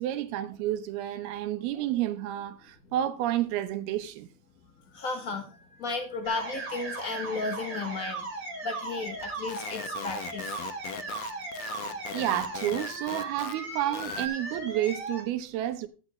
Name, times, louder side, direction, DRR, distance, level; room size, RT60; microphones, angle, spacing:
voice 1, 0.0-4.3 12.1-15.9, right 13 dB, 85° right, 2.8 m, -30 dB
voice 2, 4.9-8.3 8.6-10.5, left 3 dB, 60° left, 0.8 m, -34 dB
sound 1, 6.2-15.2, right 3 dB, 35° right, 3.9 m, -37 dB
sound 2, 9.2-13.5 13.8-14.3, left 12 dB, 85° left, 2.8 m, -40 dB
12.0 x 9.7 x 3.1 m
omnidirectional pair, 4.3 m